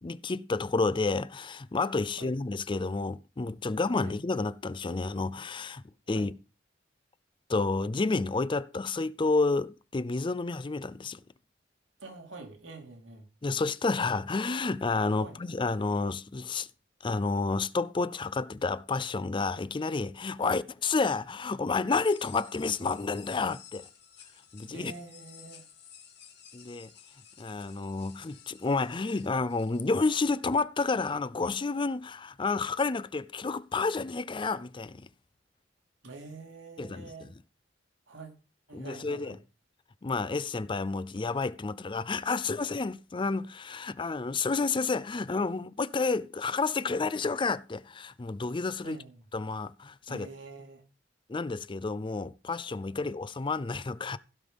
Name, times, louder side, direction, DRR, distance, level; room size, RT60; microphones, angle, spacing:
voice 1, 0.0-6.3 7.5-11.2 13.4-16.7 17.0-23.9 24.5-24.9 26.5-26.9 27.4-35.1 36.8-37.3 38.7-39.4 40.0-49.0 49.3-50.3 51.3-54.2, left 3 dB, 25° left, 0.5 m, -30 dB
voice 2, 12.0-13.2 15.2-15.4 20.4-20.6 24.7-25.6 36.0-37.3 38.1-38.3 38.7-39.4 48.8-49.2 50.1-50.8 53.0-53.1, right 3 dB, 85° right, 2.7 m, -46 dB
sound 1, 22.0-29.9, left 9 dB, 60° left, 2.6 m, -53 dB
16.0 x 5.4 x 5.2 m
head